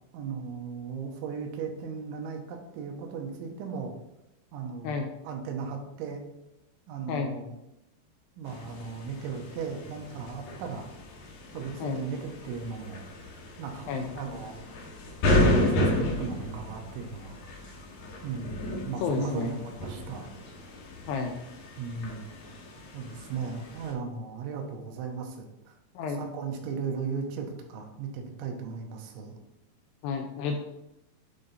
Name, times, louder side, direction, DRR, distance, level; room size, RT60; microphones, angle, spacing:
voice 1, 0.1-4.0 4.5-6.2 6.9-7.5 8.4-10.9 11.5-13.0 13.6-14.6 15.4-17.4 18.2-20.3 21.8-22.3 22.9-25.7 26.2-29.4, right 5 dB, 90° right, 3 dB, 3.4 m, -36 dB
sound 1, 8.5-23.9, left 1 dB, 65° left, 2.3 m, -32 dB
voice 2, 19.0-19.6 21.1-21.3 26.0-26.2 30.0-30.6, left 5 dB, 80° left, 3 dB, 2.4 m, -30 dB
11.0 x 3.9 x 4.1 m, 0.88 s
omnidirectional pair, 5.4 m